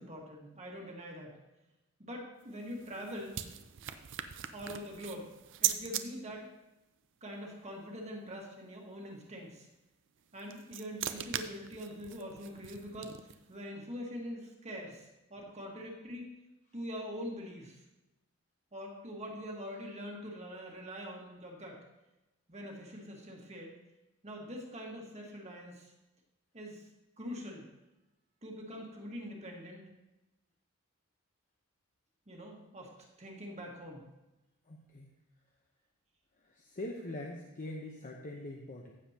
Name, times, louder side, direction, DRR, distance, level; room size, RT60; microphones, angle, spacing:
voice 1, 0.0-1.4 2.0-3.4 4.5-5.3 5.6-6.5 7.2-9.7 10.3-16.3 16.7-17.8 18.7-21.8 22.5-23.7 24.2-25.9 26.5-26.9 27.2-27.7 28.4-29.8 32.3-32.9 33.2-34.0, equal, 30° right, -1 dB, 1.6 m, -44 dB
sound 1, 2.4-6.0 10.2-13.5, right 11 dB, 55° right, 0.6 m, -39 dB
voice 2, 34.7-35.1 36.4-38.9, left 1 dB, 35° left, 0 dB, 0.9 m, -43 dB
15.0 x 7.3 x 2.9 m, 1.0 s
head